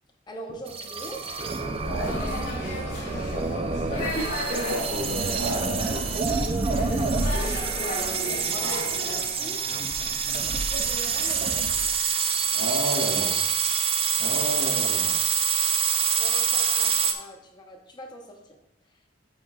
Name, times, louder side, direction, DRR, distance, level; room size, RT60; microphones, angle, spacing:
voice 1, 0.3-1.2 2.0-2.4 3.7-4.6 6.9-7.4 8.0-9.8 10.5-11.9 16.1-18.6 18.9-19.0, equal, 25° left, 2 dB, 0.8 m, -42 dB
sound 1, 0.7-17.1, right 5 dB, 30° right, 0.4 m, -26 dB
voice 2, 1.8-2.2 4.1-4.2 4.5-6.4 12.5-13.4 14.2-15.2, equal, 85° right, -2 dB, 2.2 m, -31 dB
sound 2, 2.0-9.2, left 1 dB, 60° left, 1.9 m, -35 dB
7.8 x 5.2 x 2.3 m, 0.82 s
head